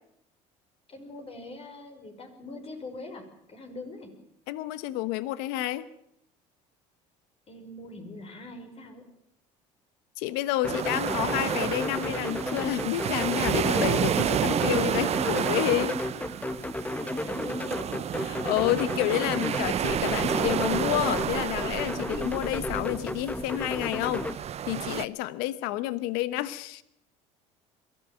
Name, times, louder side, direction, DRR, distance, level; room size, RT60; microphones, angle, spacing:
voice 1, 0.9-4.1 7.5-9.0 17.0-18.0, left 2 dB, 40° left, 5 dB, 5.7 m, -42 dB
voice 2, 4.5-5.9 10.2-16.0 18.2-24.3 24.7-26.8, left 15 dB, 80° left, 16 dB, 1.0 m, -29 dB
sound 1, 10.6-24.4, left 1 dB, 10° left, 1.0 m, -33 dB
sound 2, 10.7-25.0, right 10 dB, 45° right, 0.8 m, -30 dB
22.5 x 14.0 x 9.2 m, 0.76 s
supercardioid pair, 90°, 16 cm